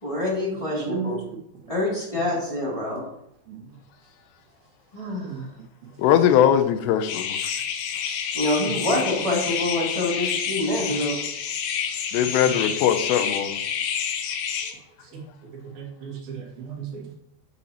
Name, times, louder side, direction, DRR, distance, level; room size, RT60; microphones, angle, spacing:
voice 1, 0.0-1.2 1.7-3.1 4.9-5.5 8.3-11.2, left 1 dB, 10° left, 1.9 m, -26 dB
voice 2, 0.9-1.2 3.5-3.6 5.2-5.4 15.1-15.2 15.8-17.1, right 7 dB, 65° right, 3.2 m, -34 dB
voice 3, 6.0-7.5 12.1-13.6, left 10 dB, 90° left, 2.8 m, -20 dB
sound 1, 7.1-14.7, left 7 dB, 75° left, 2.7 m, -29 dB
8.9 x 8.2 x 3.0 m
omnidirectional pair, 4.8 m